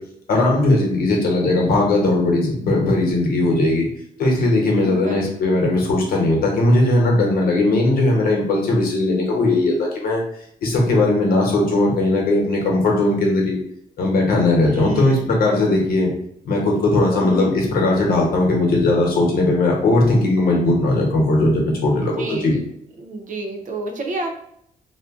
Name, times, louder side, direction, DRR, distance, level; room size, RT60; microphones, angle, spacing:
voice 1, 0.3-3.9 4.2-10.2 10.6-13.6 14.0-16.1 16.4-22.5, left 2 dB, 85° left, -1 dB, 1.0 m, -18 dB
voice 2, 4.8-5.3 14.6-15.3 17.2-17.4 21.9-22.6 23.0-24.3, right 2 dB, 60° right, 3 dB, 0.6 m, -30 dB
2.4 x 2.1 x 3.6 m, 0.71 s
cardioid pair, 110°, 15 cm